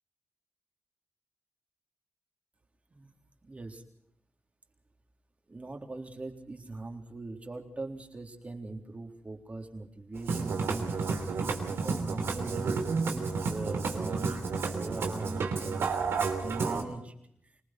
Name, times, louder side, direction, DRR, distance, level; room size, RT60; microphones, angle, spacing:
voice 1, 3.4-3.8 5.5-12.8 13.1-15.9 16.4-17.1, right 2 dB, 35° right, 4 dB, 3.8 m, -41 dB
Musical instrument, 10.2-16.8, right 4 dB, 85° right, 3.1 m, -31 dB
26.0 x 20.0 x 6.2 m, 0.73 s
cardioid pair, 70°, 4 cm